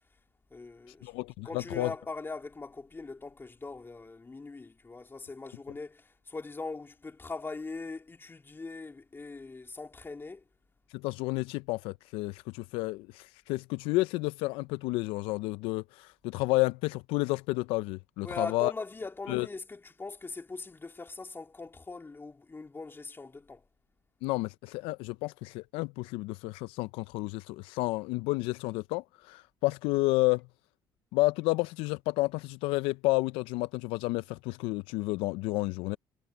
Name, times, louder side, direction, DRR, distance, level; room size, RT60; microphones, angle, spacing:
voice 1, 0.5-1.1 1.4-10.5 18.2-23.6, left 3 dB, 25° left, 3.1 m, -41 dB
voice 2, 1.0-1.9 10.9-18.7 19.3-19.5 24.2-30.5 31.1-36.0, left 21 dB, 80° left, 0.5 m, -31 dB
supercardioid pair, 65°, 9 cm